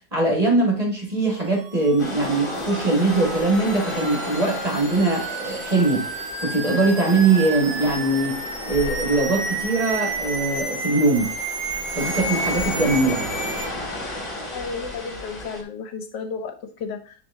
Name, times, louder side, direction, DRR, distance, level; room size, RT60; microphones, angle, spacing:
voice 1, 0.1-6.1 6.4-11.3 11.9-13.2, right 2 dB, 20° right, 0 dB, 1.6 m, -21 dB
sound 1, 1.4-13.7, right 3 dB, 45° right, 1.1 m, -32 dB
sound 2, 2.0-15.6, left 1 dB, 30° left, 2.1 m, -33 dB
voice 2, 14.5-17.1, left 5 dB, 75° left, 7 dB, 1.6 m, -33 dB
9.0 x 3.4 x 3.7 m, 0.38 s
omnidirectional pair, 1.9 m